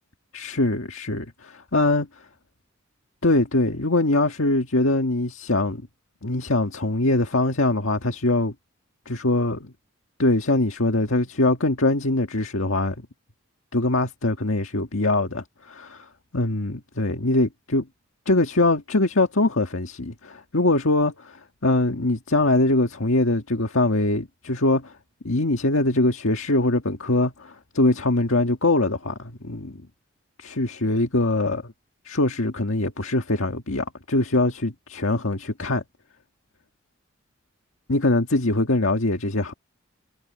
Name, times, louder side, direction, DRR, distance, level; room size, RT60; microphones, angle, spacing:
voice 1, 0.3-2.1 3.2-5.8 6.2-8.5 9.1-9.7 10.2-13.0 13.7-17.9 18.3-24.9 25.2-29.8 30.4-31.7 32.0-35.8 37.9-39.5, left 2 dB, 75° left, 1.7 m, -23 dB
head